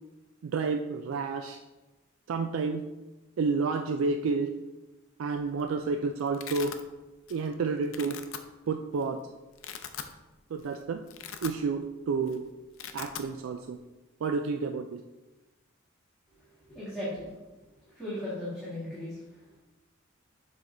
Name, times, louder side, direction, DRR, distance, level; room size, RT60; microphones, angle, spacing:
voice 1, 0.4-1.6 2.3-2.8 3.4-4.5 5.2-6.7 7.3-8.2 8.7-9.2 10.5-11.0 11.4-12.4 12.9-13.8 14.2-15.0, right 4 dB, 80° right, 6 dB, 0.3 m, -30 dB
Domestic sounds home sounds, 5.3-5.7 5.9-6.8 7.3-7.5 7.8-8.4 9.0-9.1 9.5-10.1 10.5-10.7 11.0-11.9 12.2-12.4 12.6-13.3, left 8 dB, 80° left, 0.5 m, -41 dB
voice 2, 16.7-17.3 18.0-19.2, left 1 dB, ahead, -13 dB, 2.1 m, -36 dB
7.2 x 3.4 x 3.8 m, 1.1 s
head